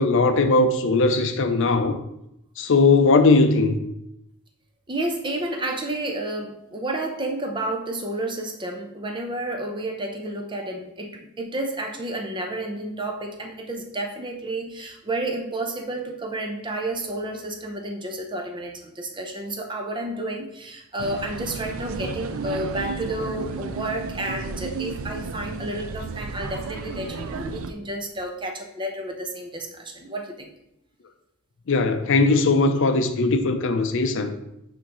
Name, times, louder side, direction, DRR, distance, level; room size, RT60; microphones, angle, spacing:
voice 1, 0.0-1.9 2.6-3.8 31.7-34.3, left 3 dB, 60° left, 0.5 m, -19 dB
voice 2, 4.9-30.5, right 1 dB, 20° right, 0.7 m, -31 dB
sound 1, 21.0-27.7, right 4 dB, 65° right, 0.4 m, -33 dB
9.9 x 3.6 x 3.0 m
head